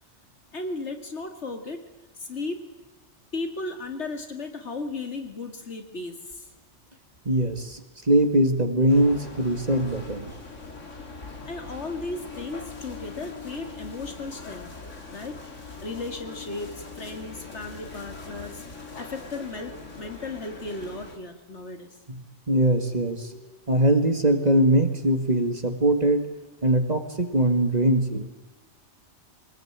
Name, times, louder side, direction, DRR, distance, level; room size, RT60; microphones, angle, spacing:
voice 1, 0.5-1.9 2.2-2.7 3.3-6.5 11.5-14.7 15.1-18.6 19.0-21.9, left 3 dB, 65° left, 6 dB, 2.6 m, -35 dB
voice 2, 7.3-10.3 22.1-22.2 22.5-23.4 23.7-26.2 26.6-28.3, right 1 dB, 35° right, 7 dB, 2.2 m, -22 dB
sound 1, 8.9-21.2, left 4 dB, 85° left, 3.2 m, -41 dB
23.0 x 20.0 x 8.9 m, 1.1 s
omnidirectional pair, 1.2 m